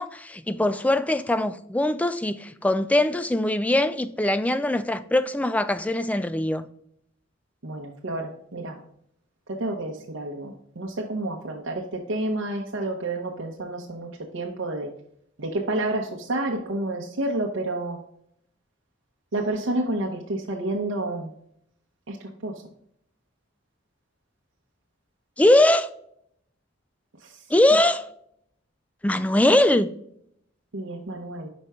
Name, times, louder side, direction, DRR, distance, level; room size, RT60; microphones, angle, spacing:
voice 1, 0.0-6.6 25.4-25.9 27.5-28.1 29.0-29.9, left 1 dB, 5° left, 0.3 m, -21 dB
voice 2, 7.6-8.8 9.5-14.9 15.4-18.0 19.3-21.3 22.1-22.5 27.2-27.4 30.7-31.5, right 2 dB, 75° right, 0.8 m, -30 dB
5.5 x 5.1 x 3.5 m
head